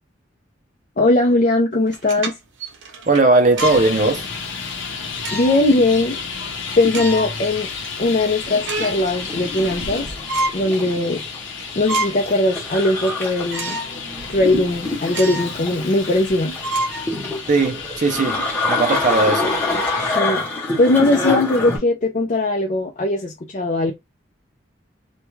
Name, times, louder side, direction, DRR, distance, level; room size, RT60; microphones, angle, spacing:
voice 1, 1.0-2.3 5.3-6.2 6.8-7.7 8.0-10.1 10.5-11.2 11.8-13.8 14.3-16.6 20.1-20.4 20.8-23.9, left 2 dB, 40° left, 0.4 m, -19 dB
sound 1, 1.9-3.9 4.4-4.5 5.2-5.7 6.1-6.2 6.8-7.4 7.8-7.9 8.3-9.1 9.4-10.0 10.3-10.6 11.1-11.2 11.6-12.3 12.7-12.8 13.5-13.9 14.3-14.4 15.1-15.6 15.9-16.0 16.6-17.6, right 1 dB, 75° right, 0.7 m, -27 dB
voice 2, 3.1-4.3 17.5-18.4 18.7-19.6, right 3 dB, 40° right, 0.5 m, -17 dB
Traffic noise roadway noise, 3.6-20.2, left 5 dB, 85° left, 0.7 m, -32 dB
sound 2, 8.6-21.8, left 2 dB, 10° left, 0.8 m, -26 dB
2.3 x 2.2 x 3.0 m
head